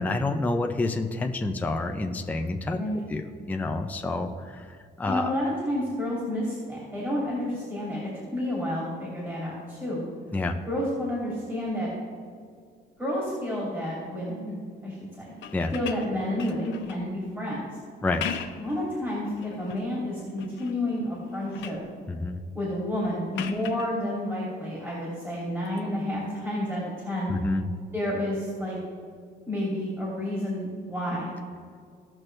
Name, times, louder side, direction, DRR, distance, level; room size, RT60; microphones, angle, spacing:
voice 1, 0.0-2.8 3.1-3.2 3.5-4.6 5.0-5.3 10.3-10.6 15.5-15.7 18.0-18.2 22.1-22.4 27.3-27.6, left 2 dB, 10° left, 4 dB, 0.5 m, -28 dB
voice 2, 5.1-10.0 10.7-11.9 13.0-14.6 14.8-15.3 15.7-17.6 18.6-21.8 22.5-27.3 27.9-28.8 29.5-31.3, left 1 dB, 10° right, -6 dB, 2.7 m, -30 dB
sound 1, 15.3-17.1 18.0-18.7 19.2-19.9 20.4-20.8 21.2-21.9 23.3-23.9 25.6-25.8, left 8 dB, 80° left, 0.8 m, -38 dB
16.5 x 6.0 x 3.3 m, 2.1 s
cardioid pair, 140°, 19 cm